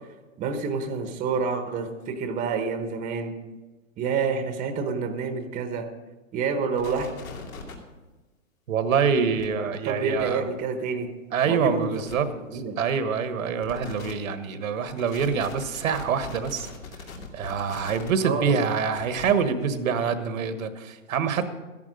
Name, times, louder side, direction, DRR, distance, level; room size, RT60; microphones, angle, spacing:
voice 1, 0.4-3.3 4.0-5.9 6.3-7.1 9.8-11.1 11.4-11.9 12.3-12.8 18.2-18.6, right 5 dB, 20° right, 7 dB, 1.0 m, -28 dB
sound 1, 6.8-7.7 9.1-9.5 10.1-10.2 11.6-11.7 11.9-12.1 13.6-14.1 14.9-18.1 18.9-19.3, left 5 dB, 75° left, 2.8 m, -41 dB
voice 2, 8.7-10.5 11.3-16.7 17.3-21.5, right 6 dB, 70° right, 10 dB, 1.4 m, -26 dB
13.0 x 11.0 x 5.2 m, 1.2 s
hypercardioid pair, 135°, 42 cm